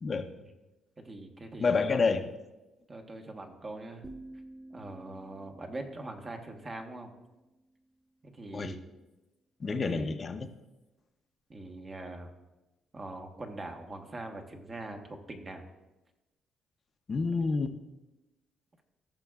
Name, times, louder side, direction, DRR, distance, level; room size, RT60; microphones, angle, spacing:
voice 1, 0.0-0.3 1.6-2.3 8.5-8.8 9.6-10.5 17.1-17.8, left 4 dB, 40° left, 7 dB, 0.7 m, -28 dB
voice 2, 1.0-2.0 2.9-4.0 4.7-7.1 8.2-8.8 9.7-10.1 11.5-12.3 12.9-15.7, right 2 dB, 30° right, 4 dB, 1.3 m, -42 dB
sound 1, 4.0-7.9, right 1 dB, 10° right, 0.4 m, -51 dB
15.5 x 6.2 x 2.4 m, 1.0 s
cardioid pair, 90°, 0 cm